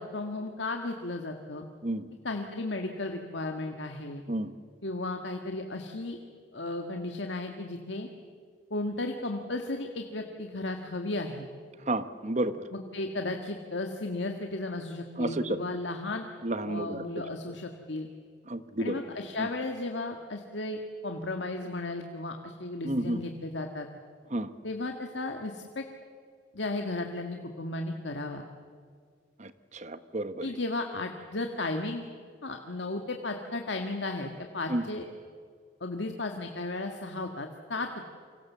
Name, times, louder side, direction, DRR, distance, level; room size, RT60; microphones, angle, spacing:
voice 1, 0.0-1.7 2.2-4.2 4.8-6.2 6.5-8.1 8.7-11.5 12.7-16.3 16.6-18.1 18.8-23.9 24.6-25.8 26.5-28.4 30.4-32.1 32.4-35.0 35.8-38.0, left 2 dB, 70° left, 4 dB, 1.7 m, -34 dB
voice 2, 11.9-12.6 15.2-15.6 16.4-17.0 18.5-19.0 19.4-19.5 22.8-23.2 24.3-24.5 29.4-30.5 34.7-34.8, right 1 dB, 40° right, 11 dB, 1.2 m, -31 dB
29.0 x 25.0 x 7.3 m, 2.1 s
head